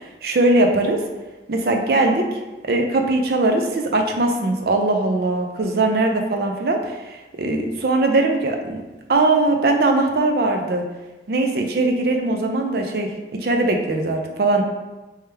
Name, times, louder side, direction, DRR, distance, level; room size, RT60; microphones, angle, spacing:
voice 1, 0.2-1.0 1.5-2.3 2.7-8.8 9.1-10.8 11.3-13.1 13.4-14.6, right 2 dB, 60° right, 3 dB, 0.5 m, -20 dB
3.3 x 3.1 x 3.2 m, 1.1 s
head